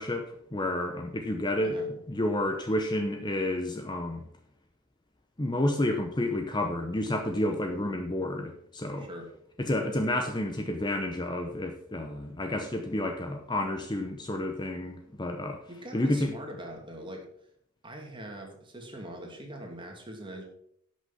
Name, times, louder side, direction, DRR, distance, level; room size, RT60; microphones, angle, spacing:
voice 1, 0.0-1.8 2.1-4.2 5.4-9.1 9.6-15.6 15.9-16.3, left 1 dB, 20° left, 5 dB, 0.8 m, -30 dB
voice 2, 15.7-17.2 17.8-20.4, right 1 dB, 25° right, 1 dB, 2.3 m, -42 dB
11.0 x 6.3 x 5.7 m, 0.70 s
head